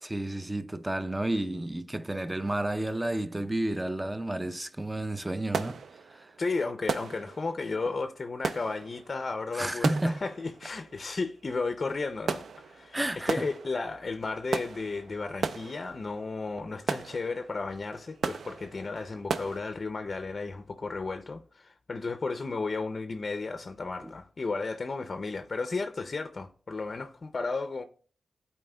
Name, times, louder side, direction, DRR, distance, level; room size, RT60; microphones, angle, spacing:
voice 1, 0.0-5.8 6.1-6.3 9.5-10.2 12.9-13.5 24.0-24.1, right 1 dB, 20° right, 0.5 m, -31 dB
sound 1, 4.5-4.7 5.0-19.6, right 5 dB, 80° right, 0.3 m, -37 dB
voice 2, 6.4-27.8, left 3 dB, 50° left, 0.4 m, -34 dB
11.0 x 4.3 x 2.2 m
cardioid pair, 60°, 0 cm